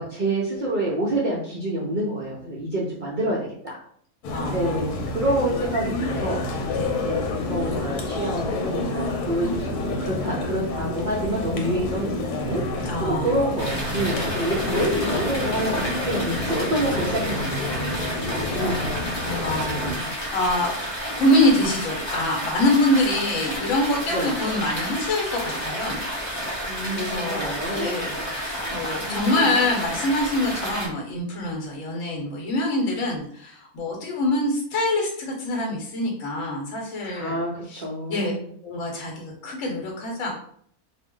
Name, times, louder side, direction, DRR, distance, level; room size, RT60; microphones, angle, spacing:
voice 1, 0.0-3.8 4.5-4.9 5.1-6.6 7.0-17.7 18.3-18.9 19.8-20.1 24.1-24.3 26.7-27.9 29.1-29.5 37.1-38.5, right 1 dB, 60° right, -5 dB, 0.5 m, -27 dB
sound 1, 4.2-19.9, left 2 dB, 85° left, 1.1 m, -28 dB
voice 2, 4.3-5.0 6.7-6.9 12.8-13.3 19.4-20.7 21.2-26.0 26.3-37.4 37.7-37.8 38.1-38.3 38.6-40.3, left 1 dB, 65° left, -1 dB, 1.0 m, -25 dB
sound 2, 13.6-30.9, equal, 25° left, 0.6 m, -31 dB
2.6 x 2.0 x 3.6 m, 0.62 s
omnidirectional pair, 1.6 m